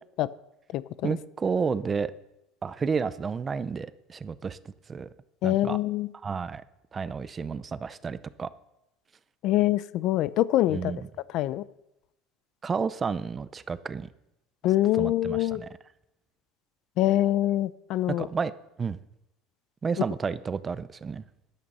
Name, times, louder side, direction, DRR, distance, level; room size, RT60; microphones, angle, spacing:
voice 1, 1.0-2.1 2.6-4.6 4.9-5.1 5.4-5.8 6.2-6.6 6.9-8.5 10.7-11.1 12.6-14.1 15.0-15.7 18.1-18.5 18.8-19.0 19.8-21.2, right 5 dB, 20° right, 15 dB, 0.5 m, -31 dB
voice 2, 5.4-6.1 9.4-10.9 11.3-11.6 14.6-15.6 17.0-18.3, left 14 dB, 50° left, 17 dB, 0.5 m, -24 dB
13.5 x 11.5 x 5.5 m, 0.86 s
cardioid pair, 150°, 0 cm